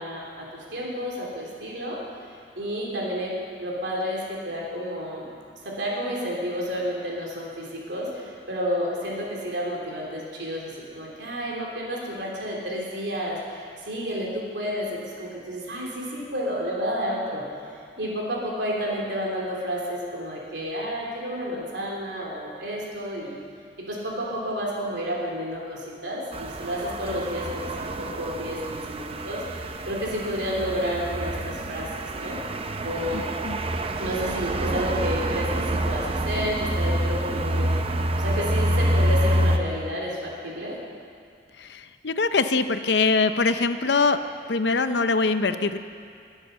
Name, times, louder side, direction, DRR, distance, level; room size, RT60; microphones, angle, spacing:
voice 1, 0.0-2.0 2.5-3.3 3.6-5.3 5.6-17.4 18.0-23.4 23.8-32.4 32.8-33.3 34.0-37.9 38.2-40.8, equal, 70° right, -3 dB, 3.3 m, -31 dB
sound 1, 26.3-39.6, right 1 dB, 30° right, 0.7 m, -27 dB
voice 2, 33.1-33.6 41.6-44.2 44.5-45.8, left 4 dB, 65° left, 10 dB, 0.7 m, -23 dB
21.5 x 8.2 x 6.9 m, 2.4 s
head